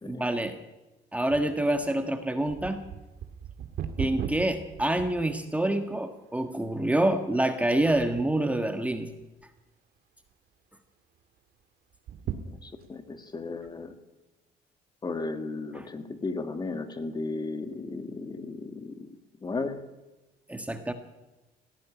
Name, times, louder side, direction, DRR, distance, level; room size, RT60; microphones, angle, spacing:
voice 1, 0.0-0.6 1.1-2.8 4.0-9.1 15.7-15.9 20.5-20.9, right 1 dB, 10° right, 7 dB, 1.5 m, -27 dB
sound 1, 1.3-5.8 6.3-6.4 7.1-7.4 7.7-8.4 8.9-9.6 10.0-10.1 10.3-10.4 11.9-13.0 13.6-13.7, right 9 dB, 65° right, 2.1 m, -38 dB
voice 2, 12.4-13.9 15.0-19.1 19.4-19.9, left 3 dB, 25° left, 8 dB, 1.8 m, -35 dB
18.0 x 15.0 x 9.9 m, 1.1 s
cardioid pair, 110°, 17 cm